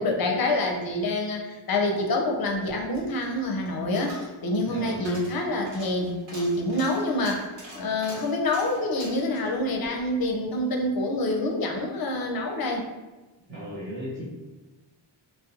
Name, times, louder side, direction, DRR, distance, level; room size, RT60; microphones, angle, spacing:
voice 1, 0.0-7.5 7.7-12.8, left 1 dB, 50° left, 1 dB, 0.5 m, -27 dB
Coin (dropping), 2.5-10.9 11.2-11.3, equal, 60° right, 1.0 m, -46 dB
voice 2, 4.7-5.2 13.5-14.3, equal, 25° right, -11 dB, 0.8 m, -35 dB
2.5 x 2.0 x 2.7 m, 1.2 s
wide cardioid pair, 90°, 48 cm